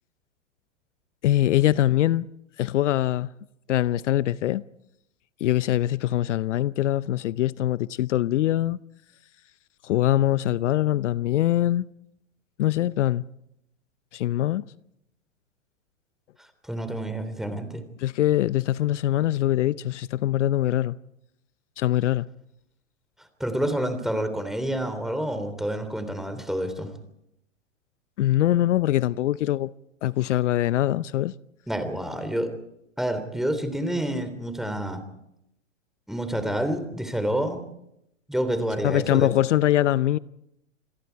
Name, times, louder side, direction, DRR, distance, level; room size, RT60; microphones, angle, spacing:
voice 1, 1.2-2.3 2.6-3.3 3.7-4.6 5.4-8.8 9.8-11.8 12.6-13.2 14.1-14.6 18.0-21.0 21.8-22.3 28.2-29.7 30.0-31.3 38.8-40.2, left 13 dB, 65° left, 0.7 m, -23 dB
voice 2, 16.4-17.8 23.4-26.9 31.7-32.5 33.0-35.0 36.1-37.6 38.3-39.3, right 1 dB, ahead, 3.2 m, -28 dB
28.0 x 22.0 x 4.6 m
hypercardioid pair, 115°, 39 cm